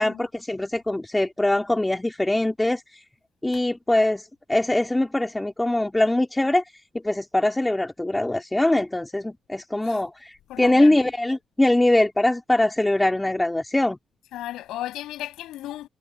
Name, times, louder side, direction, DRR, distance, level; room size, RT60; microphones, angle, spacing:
voice 1, 0.0-2.8 3.4-6.6 7.0-14.0, left 1 dB, 15° left, 3.9 m, -22 dB
voice 2, 10.5-11.1 14.3-15.9, left 14 dB, 85° left, 7.5 m, -35 dB
cardioid pair, 70°, 0 cm